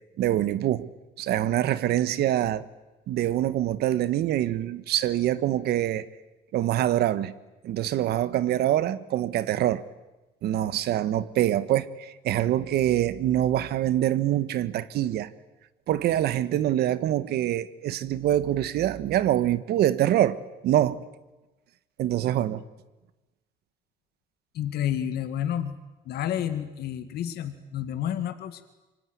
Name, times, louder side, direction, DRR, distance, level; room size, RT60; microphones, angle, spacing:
voice 1, 0.2-0.9 1.2-2.6 3.1-6.1 6.5-7.3 7.6-9.8 10.4-15.3 15.9-21.0 22.0-22.6, right 12 dB, 70° right, 1.4 m, -25 dB
voice 2, 24.5-25.7 26.1-28.6, left 10 dB, 70° left, 2.0 m, -30 dB
25.5 x 24.0 x 9.5 m
cardioid pair, 110°, 17 cm